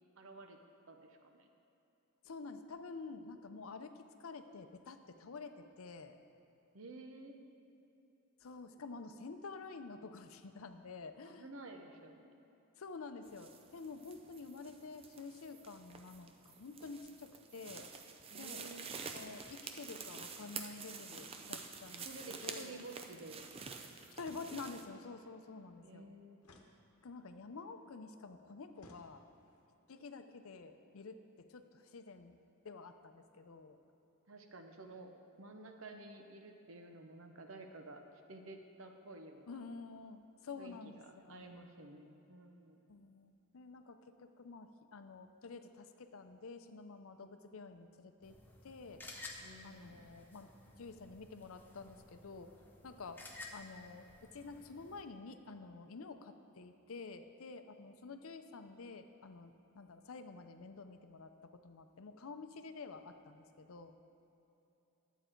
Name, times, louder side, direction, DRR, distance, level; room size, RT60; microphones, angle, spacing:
voice 1, 0.2-0.6 0.9-1.5 6.7-7.4 11.2-12.3 18.3-18.9 21.4-21.6 22.0-23.4 25.8-26.4 34.3-35.1 35.4-38.0 38.3-39.6 40.6-40.8 41.0-42.8 49.4-50.0, right 2 dB, 65° right, 4 dB, 0.8 m, -52 dB
voice 2, 2.2-6.2 8.4-11.5 12.8-17.9 18.4-18.6 19.1-22.8 24.0-26.2 27.0-29.2 29.9-31.2 31.5-32.4 32.6-33.8 39.5-41.6 42.9-48.4 48.6-49.0 49.6-50.5 50.8-53.2 53.5-64.0, left 4 dB, 70° left, 8 dB, 0.6 m, -49 dB
sound 1, 13.3-24.8, right 5 dB, 25° right, 0.4 m, -49 dB
sound 2, 24.2-24.9 26.4-27.4 28.8-29.6, left 1 dB, 85° left, 1.0 m, -62 dB
sound 3, 48.2-55.0, left 2 dB, 10° left, 0.7 m, -54 dB
11.0 x 8.1 x 4.5 m, 3.0 s
head